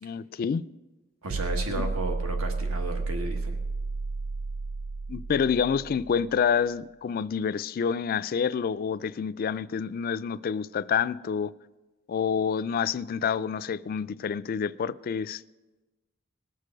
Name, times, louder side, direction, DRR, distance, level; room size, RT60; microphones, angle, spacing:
voice 1, 0.0-0.6 1.7-1.9 5.1-11.5 12.1-15.4, left 7 dB, 45° left, 0.3 m, -28 dB
voice 2, 1.2-3.6, right 2 dB, 75° right, 1.2 m, -34 dB
sound 1, 1.3-6.3, right 3 dB, 60° right, 0.3 m, -32 dB
19.5 x 6.5 x 5.1 m
head